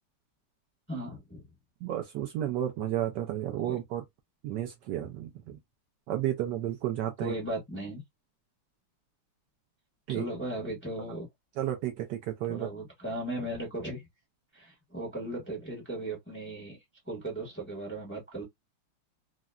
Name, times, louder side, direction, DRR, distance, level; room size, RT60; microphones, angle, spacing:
voice 1, 0.9-1.5 3.6-3.8 7.2-8.0 10.1-11.3 12.5-14.0 14.5-16.8 17.1-18.4, right 1 dB, 15° left, 0.3 m, -37 dB
voice 2, 1.8-4.0 4.4-5.6 6.1-7.3 10.1-10.2 11.6-12.7, right 12 dB, 85° right, 0.9 m, -32 dB
3.8 x 2.0 x 2.3 m
omnidirectional pair, 2.4 m